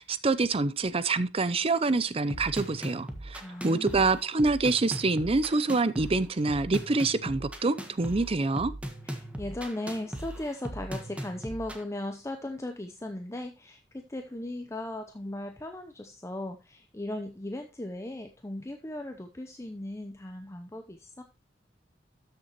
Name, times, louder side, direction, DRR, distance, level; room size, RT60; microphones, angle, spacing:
voice 1, 0.0-8.7, right 3 dB, 35° right, 0.6 m, -26 dB
sound 1, 2.3-11.8, right 1 dB, 10° right, 1.3 m, -39 dB
voice 2, 3.3-4.0 9.0-21.2, left 1 dB, 15° left, 0.7 m, -37 dB
13.0 x 6.7 x 3.0 m
head